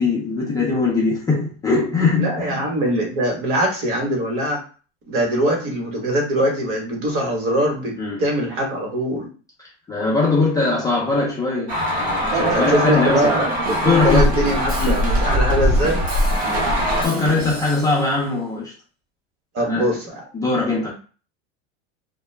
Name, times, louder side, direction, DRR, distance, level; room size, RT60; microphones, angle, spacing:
voice 1, 0.0-2.7 8.0-8.2 9.6-13.3 13.8-14.3 14.7-15.0 16.4-18.7 19.6-20.0 20.3-20.9, left 3 dB, 10° left, -5 dB, 0.4 m, -21 dB
voice 2, 2.2-4.6 5.0-9.3 12.5-16.0 19.5-20.1, right 1 dB, 45° right, 0 dB, 1.2 m, -22 dB
sound 1, 11.7-17.1, equal, 75° right, 0.9 m, -21 dB
Drum kit / Drum, 13.7-18.1, right 2 dB, 25° right, 0.7 m, -32 dB
2.2 x 2.0 x 3.2 m, 0.38 s
supercardioid pair, 145°, 32 cm